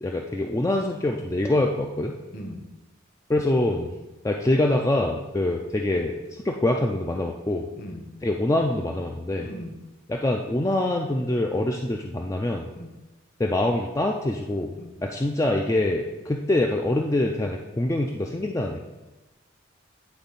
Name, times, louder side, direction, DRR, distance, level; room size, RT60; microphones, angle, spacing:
voice 1, 0.0-2.2 3.3-3.9 4.2-6.2 6.4-7.7 8.2-9.5 10.1-12.7 13.4-14.8 15.0-18.9, left 1 dB, 15° left, 1 dB, 0.3 m, -25 dB
voice 2, 2.3-2.7 7.8-8.1 9.4-9.8 12.7-12.9 14.8-14.9, equal, 45° left, 4 dB, 0.9 m, -38 dB
9.7 x 3.7 x 4.0 m, 1.1 s
head